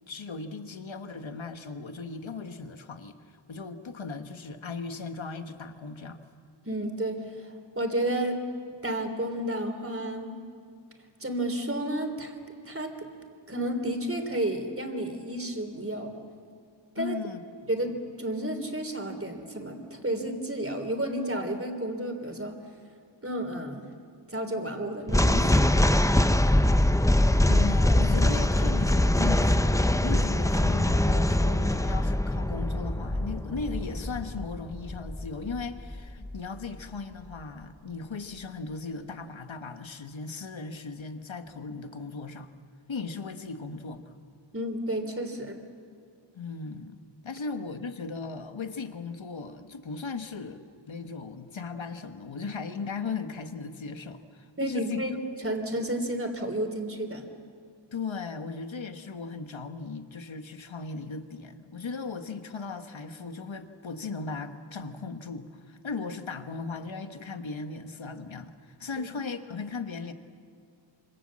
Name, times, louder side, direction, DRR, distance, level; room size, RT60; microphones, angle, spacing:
voice 1, 0.1-6.2 17.0-17.4 26.7-26.8 27.5-42.5 42.9-44.1 46.3-55.0 57.9-70.1, left 4 dB, 80° left, 8 dB, 1.4 m, -37 dB
voice 2, 6.6-8.4 8.8-10.4 11.2-12.3 12.6-13.1 13.5-16.1 16.9-17.2 17.7-22.6 23.2-23.8 24.3-25.5 44.5-45.6 54.6-55.1 55.4-57.3 69.0-69.1, right 1 dB, 30° right, 5 dB, 3.3 m, -31 dB
sound 1, 25.1-36.4, left 1 dB, 5° left, 0.7 m, -23 dB
26.5 x 25.5 x 7.6 m, 2.3 s
wide cardioid pair, 70°, 46 cm